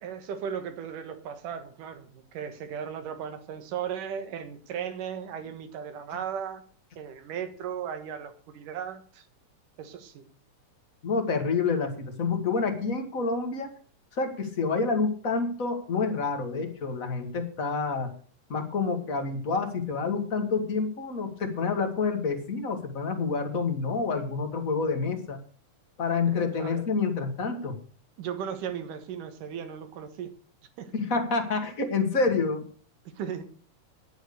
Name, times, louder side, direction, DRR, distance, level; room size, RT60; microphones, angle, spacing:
voice 1, 0.0-6.6 7.0-9.3 9.8-10.2 26.3-26.8 28.2-30.3 30.8-30.9 33.2-33.5, right 8 dB, 85° right, 9 dB, 3.0 m, -36 dB
voice 2, 11.0-13.7 14.1-18.1 18.5-25.4 26.0-27.8 30.9-32.6, left 4 dB, 35° left, 6 dB, 1.6 m, -28 dB
10.0 x 9.2 x 6.7 m, 0.43 s
omnidirectional pair, 3.6 m